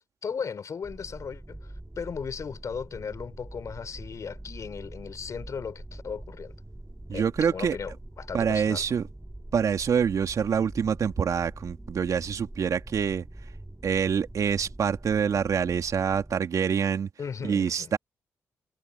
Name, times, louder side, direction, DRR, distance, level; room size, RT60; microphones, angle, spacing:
voice 1, 0.2-1.6 2.0-6.5 7.1-8.8 17.2-17.9, left 6 dB, 55° left, 4.4 m, -36 dB
sound 1, 0.8-16.4, right 1 dB, 15° right, 6.7 m, -44 dB
voice 2, 7.1-7.8 8.3-9.0 9.5-13.2 13.8-17.1 17.4-18.0, right 7 dB, 60° right, 3.0 m, -26 dB
supercardioid pair, 55°, 6 cm